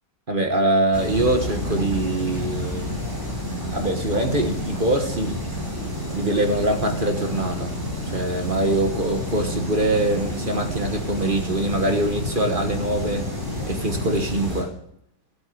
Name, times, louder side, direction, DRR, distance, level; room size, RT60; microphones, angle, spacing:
voice 1, 0.3-2.9 3.7-5.4 6.1-7.7 8.0-13.2 13.7-14.7, right 1 dB, 30° right, 5 dB, 1.4 m, -23 dB
sound 1, 0.9-14.6, left 1 dB, 10° right, 4.8 m, -29 dB
17.5 x 8.0 x 7.8 m, 0.75 s
omnidirectional pair, 1.9 m